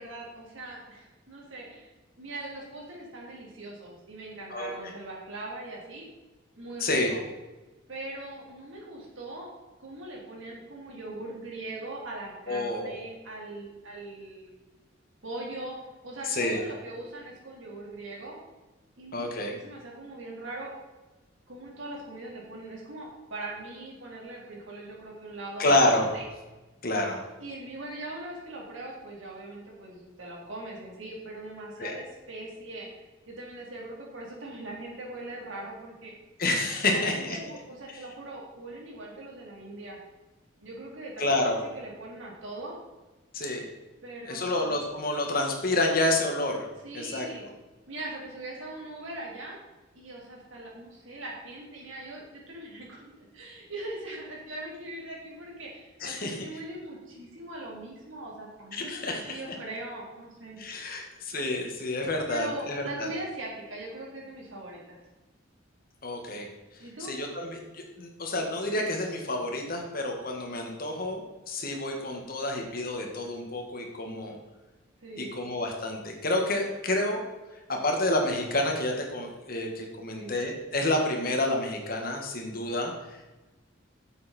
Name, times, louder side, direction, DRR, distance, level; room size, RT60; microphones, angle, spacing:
voice 1, 0.0-1.9 2.2-6.1 6.6-7.2 7.9-9.5 9.8-14.6 15.2-15.8 16.0-18.4 19.0-20.7 21.5-25.7 26.1-26.3 27.4-36.1 36.9-40.0 40.6-41.3 41.7-42.8 44.0-44.7 46.8-47.5 47.9-49.6 49.9-60.6 62.3-65.0 66.8-67.1 75.0-75.4 80.1-80.3, right 2 dB, 80° right, -3 dB, 3.5 m, -41 dB
voice 2, 4.5-4.9 6.8-7.1 12.5-13.0 16.3-16.6 19.1-19.5 25.6-26.1 26.8-27.2 31.8-32.0 36.4-37.4 37.9-38.0 41.2-41.6 43.3-43.7 44.3-46.6 46.9-47.3 56.0-56.5 58.7-59.4 60.6-63.1 66.0-66.5 67.0-74.4 75.2-77.2 77.7-83.2, left 2 dB, 50° left, 2 dB, 1.8 m, -29 dB
11.0 x 7.6 x 4.4 m, 1.1 s
head